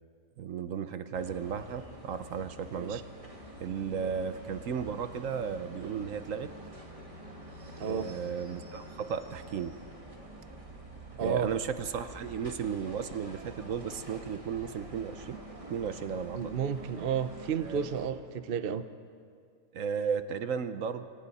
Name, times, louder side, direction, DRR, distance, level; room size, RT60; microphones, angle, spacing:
voice 1, 0.4-3.0 3.6-6.5 7.8-9.8 11.2-15.4 15.7-16.4 17.6-17.9 19.7-21.1, right 7 dB, 65° right, 10 dB, 1.1 m, -34 dB
sound 1, 1.1-18.1, right 1 dB, 20° right, 2.4 m, -47 dB
voice 2, 16.4-18.8, right 7 dB, 50° right, 11 dB, 0.8 m, -32 dB
27.5 x 24.5 x 4.2 m, 2.2 s
omnidirectional pair, 1.5 m